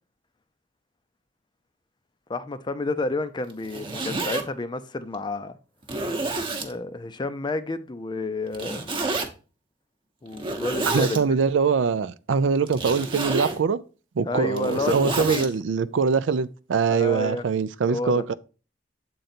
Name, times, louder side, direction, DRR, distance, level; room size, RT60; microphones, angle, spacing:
voice 1, 2.3-5.6 6.6-8.9 10.2-11.2 14.2-15.5 16.9-17.4 17.8-18.2, left 2 dB, 25° left, 0.4 m, -30 dB
Zipper (clothing), 3.5-4.4 5.1-5.2 5.8-6.7 8.5-9.3 10.3-11.2 12.7-13.6 14.4-15.5, right 2 dB, 30° right, 0.9 m, -29 dB
voice 2, 10.9-13.8 14.2-18.3, right 5 dB, 75° right, 0.4 m, -23 dB
7.7 x 3.9 x 4.3 m
head